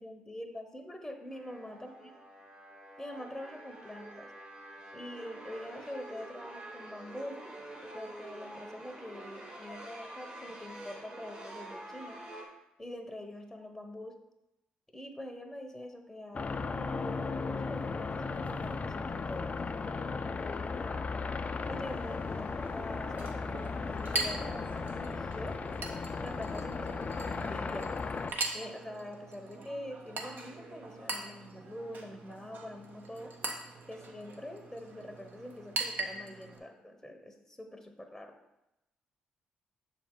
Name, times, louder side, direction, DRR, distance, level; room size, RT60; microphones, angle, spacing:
voice 1, 0.0-2.1 3.0-4.3 4.9-12.2 12.8-14.1 14.9-21.1 21.7-25.6 26.2-27.9 28.5-33.3 33.9-38.3, left 1 dB, 5° left, 5 dB, 0.9 m, -45 dB
sound 1, 1.3-12.5, right 1 dB, 35° right, 1.9 m, -47 dB
sound 2, 16.3-28.3, left 4 dB, 40° left, 0.4 m, -36 dB
Chink clink, 21.6-36.6, right 3 dB, 55° right, 0.9 m, -41 dB
6.4 x 4.2 x 3.7 m, 0.91 s
hypercardioid pair, 45°, 4 cm